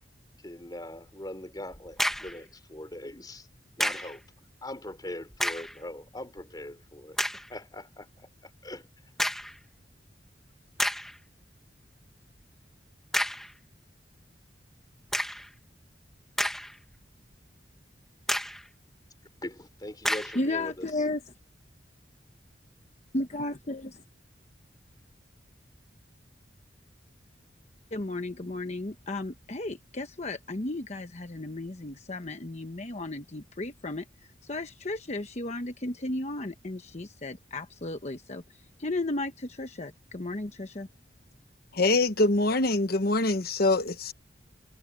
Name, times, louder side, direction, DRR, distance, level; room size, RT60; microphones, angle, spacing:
voice 1, 0.4-3.5 3.8-4.2 4.6-8.9 19.4-21.0, left 1 dB, 20° left, 3.7 m, -41 dB
sound 1, 1.7-2.4 3.8-4.2 5.3-5.8 6.4-6.5 7.2-7.5 9.2-9.6 10.3-10.4 10.8-11.2 13.1-13.5 15.1-15.5 16.1-16.9 17.3-17.4 18.3-18.7 20.0-20.4, equal, ahead, 1.2 m, -30 dB
voice 2, 20.3-21.2 23.1-24.0 27.9-34.0 34.4-38.4 38.8-40.9, left 2 dB, 40° left, 1.0 m, -34 dB
voice 3, 41.7-44.1, left 2 dB, 55° left, 1.2 m, -24 dB
head